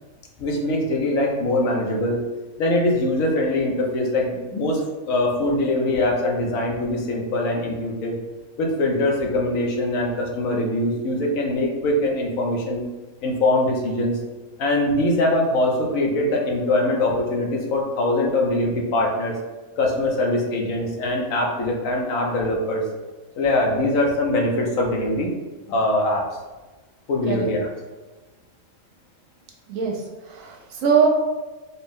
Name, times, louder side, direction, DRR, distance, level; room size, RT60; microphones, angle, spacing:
voice 1, 0.4-2.2 2.6-8.2 8.6-12.8 13.2-14.2 14.6-19.3 19.8-22.8 23.4-25.3 25.7-26.2 27.1-27.7, left 1 dB, 75° left, 0 dB, 1.1 m, -22 dB
voice 2, 29.7-31.1, right 6 dB, 75° right, 1 dB, 1.0 m, -22 dB
4.2 x 2.0 x 3.5 m, 1.2 s
omnidirectional pair, 1.4 m